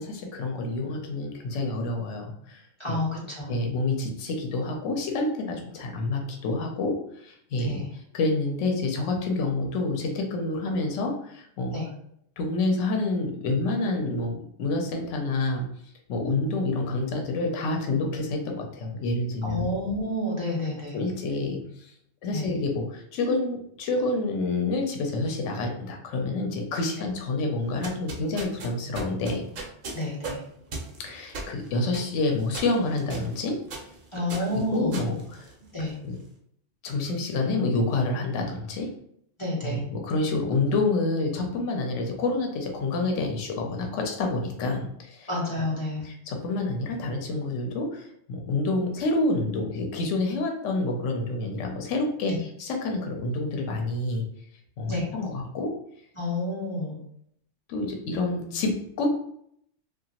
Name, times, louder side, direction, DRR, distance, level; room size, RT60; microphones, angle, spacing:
voice 1, 0.0-3.0 3.5-11.7 12.4-14.3 14.6-15.7 16.1-19.6 20.9-21.9 22.2-29.4 31.0-33.6 34.5-35.5 36.0-36.2 36.8-38.9 39.6-45.3 46.0-54.2 54.8-55.7 57.7-59.1, left 2 dB, 80° left, 2 dB, 0.9 m, -28 dB
voice 2, 2.8-3.5 7.6-7.9 11.7-11.9 19.4-21.0 22.3-22.5 29.9-30.4 34.1-35.0 35.7-36.0 39.4-39.8 45.3-46.0 52.3-52.4 54.9-55.1 56.2-57.0, left 1 dB, 30° left, -4 dB, 0.6 m, -29 dB
sound 1, 27.6-36.0, right 3 dB, 55° right, 0.6 m, -39 dB
2.8 x 2.4 x 2.8 m, 0.69 s
omnidirectional pair, 1.2 m